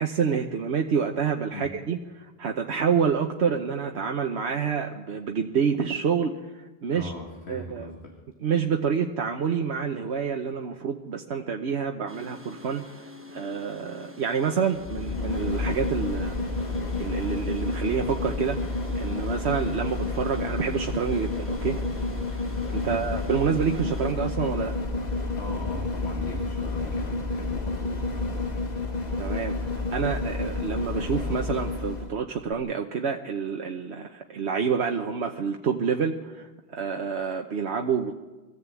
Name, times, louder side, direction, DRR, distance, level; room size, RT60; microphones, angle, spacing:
voice 1, 0.0-6.3 6.8-7.1 7.5-7.9 8.4-12.9 13.3-16.4 17.0-21.8 22.7-24.7 29.2-38.1, right 6 dB, 80° right, 3 dB, 1.3 m, -28 dB
voice 2, 6.9-8.2 22.8-23.1 25.4-28.3, left 1 dB, 80° left, 1 dB, 2.4 m, -39 dB
sound 1, 12.1-24.1, left 1 dB, 10° right, 1.2 m, -47 dB
sound 2, 14.8-32.1 32.5-32.6, left 3 dB, 40° left, 1.5 m, -30 dB
23.0 x 14.5 x 8.3 m, 1.2 s
omnidirectional pair, 1.1 m